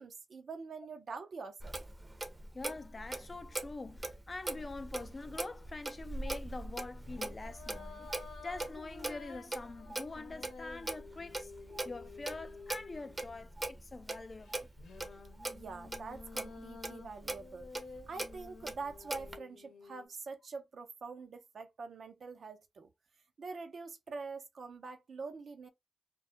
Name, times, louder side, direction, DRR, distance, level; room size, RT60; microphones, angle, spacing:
voice 1, 0.0-1.8 15.5-17.7 18.1-22.9 23.4-25.7, right 4 dB, 70° right, 0.5 m, -45 dB
Clock, 1.6-19.4, right 2 dB, 30° right, 0.6 m, -42 dB
voice 2, 2.5-8.1 8.4-11.5 11.8-14.7, left 3 dB, 40° left, 0.4 m, -45 dB
sound 1, 5.2-5.6 6.9-13.6 14.4-20.1, left 4 dB, 90° left, 0.7 m, -52 dB
2.2 x 2.1 x 2.7 m
supercardioid pair, 45°, 0 cm